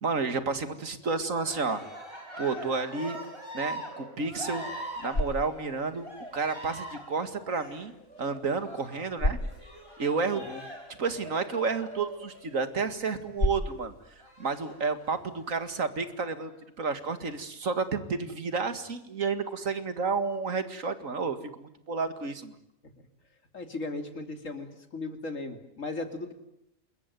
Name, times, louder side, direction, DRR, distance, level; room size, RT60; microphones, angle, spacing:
voice 1, 0.0-1.8 2.4-3.2 3.5-4.7 5.0-6.1 6.3-7.9 8.2-9.4 10.0-10.4 10.9-13.9 14.4-16.5 16.8-22.5, right 4 dB, 80° right, 10 dB, 2.4 m, -31 dB
Cheering, 1.3-13.0 14.2-15.1 15.8-16.4, equal, 20° right, 7.7 m, -43 dB
sound 1, 4.7-15.8, left 1 dB, 45° left, 3.3 m, -38 dB
voice 2, 23.5-26.3, left 3 dB, 75° left, 7 dB, 3.3 m, -37 dB
28.0 x 22.0 x 9.3 m, 0.80 s
omnidirectional pair, 1.4 m